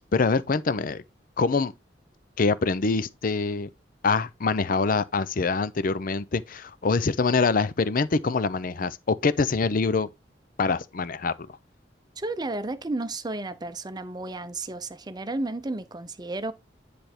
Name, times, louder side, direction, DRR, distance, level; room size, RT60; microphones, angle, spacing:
voice 1, 0.1-1.0 1.4-1.7 2.4-3.7 4.0-10.1 10.6-11.4, left 4 dB, 50° left, 0.6 m, -24 dB
voice 2, 12.2-16.5, right 2 dB, 25° right, 0.6 m, -32 dB
10.0 x 3.4 x 4.4 m
head